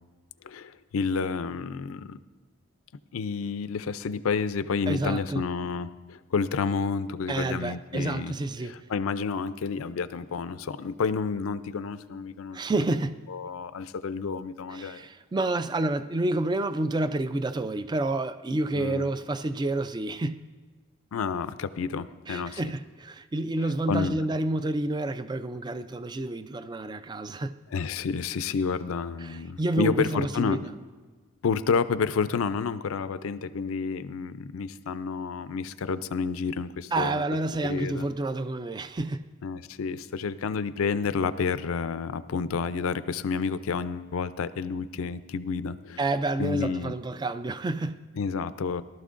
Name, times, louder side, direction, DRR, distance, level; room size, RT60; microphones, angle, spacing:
voice 1, 0.4-2.2 3.1-8.3 8.6-12.6 13.3-15.0 18.7-19.1 21.1-22.6 23.9-24.2 27.7-30.7 31.4-37.2 37.6-38.1 39.4-46.0 46.4-46.9 48.2-48.8, left 5 dB, 85° left, 0.4 m, -30 dB
voice 2, 4.9-5.4 7.3-8.7 12.5-13.2 14.7-20.4 22.3-27.5 29.2-30.6 36.9-39.2 46.0-48.0, right 2 dB, 20° right, 0.3 m, -29 dB
18.0 x 12.0 x 2.5 m
head